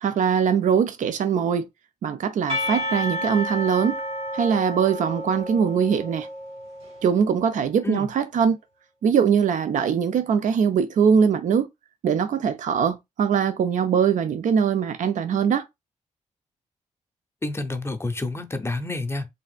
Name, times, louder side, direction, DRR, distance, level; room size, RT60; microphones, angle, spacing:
voice 1, 0.0-1.7 2.0-3.9 4.3-6.3 7.0-8.6 9.0-11.7 12.0-15.6, right 7 dB, 75° right, 0.5 m, -22 dB
Percussion, 2.5-7.3, left 1 dB, 45° right, 1.1 m, -31 dB
voice 2, 17.4-19.3, left 2 dB, 20° left, 0.6 m, -28 dB
3.4 x 2.4 x 2.4 m
cardioid pair, 65°, 13 cm